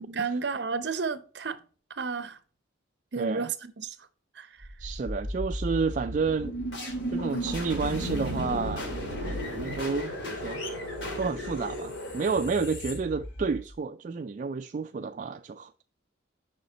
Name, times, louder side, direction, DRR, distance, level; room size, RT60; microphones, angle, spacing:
voice 1, 0.0-1.6 1.9-2.4 3.1-4.0 4.4-4.7, right 4 dB, 60° right, 0.7 m, -32 dB
voice 2, 3.2-3.5 4.8-6.6 7.1-8.8 9.2-10.6 11.2-15.7, right 4 dB, 40° right, 0.3 m, -30 dB
sound 1, 4.6-13.7, equal, 65° left, 2.8 m, -34 dB
6.9 x 5.0 x 4.0 m
head